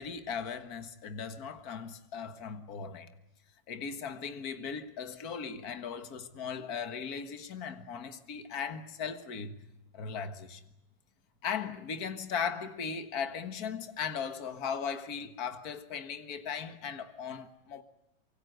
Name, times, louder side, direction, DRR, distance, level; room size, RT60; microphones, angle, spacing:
voice 1, 0.0-3.1 3.7-9.5 9.9-10.6 11.4-17.8, left 6 dB, 55° left, 2.0 m, -38 dB
25.5 x 23.5 x 8.0 m
omnidirectional pair, 2.0 m